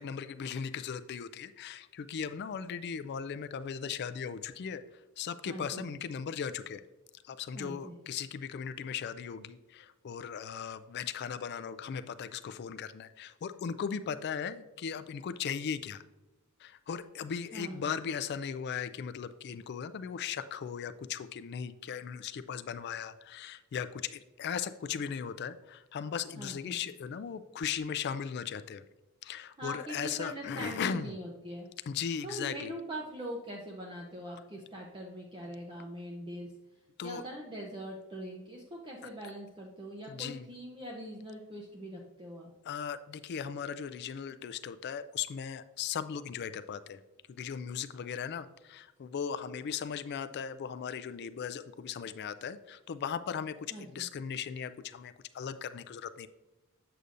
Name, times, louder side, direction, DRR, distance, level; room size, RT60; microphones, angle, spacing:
voice 1, 0.0-4.8 5.2-6.8 7.2-16.0 16.6-28.8 29.2-31.1 31.9-32.7 37.0-37.2 40.1-40.5 42.6-47.0 47.3-56.3, left 7 dB, 50° left, 12 dB, 0.3 m, -37 dB
voice 2, 5.5-5.9 7.5-8.0 17.5-17.9 26.4-26.8 29.6-31.7 32.2-36.5 37.0-42.5 53.7-54.0, equal, 20° right, -2 dB, 0.6 m, -42 dB
8.0 x 6.7 x 2.5 m, 1.1 s
head